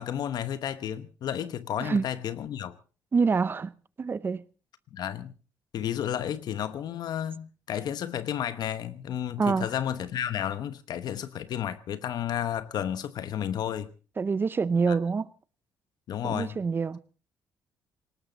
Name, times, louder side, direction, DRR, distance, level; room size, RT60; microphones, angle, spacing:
voice 1, 0.0-2.8 4.9-5.3 5.7-13.9 14.9-15.0 16.1-16.6, left 10 dB, 65° left, 1.0 m, -32 dB
voice 2, 3.1-3.7 4.0-4.4 9.4-9.7 14.2-15.3 16.2-17.0, right 5 dB, 30° right, 0.8 m, -26 dB
19.0 x 19.0 x 4.0 m
cardioid pair, 120°, 8 cm